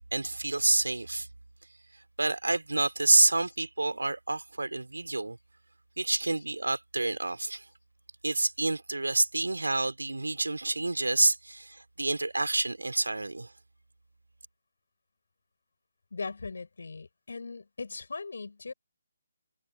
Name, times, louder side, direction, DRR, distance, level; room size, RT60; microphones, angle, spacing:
voice 1, 0.1-1.3 2.2-5.4 6.0-7.6 8.2-13.5, right 2 dB, 75° right, 3.4 m, -28 dB
voice 2, 16.1-18.7, left 4 dB, 60° left, 7.0 m, -39 dB
figure-of-eight pair, 145°, 0 cm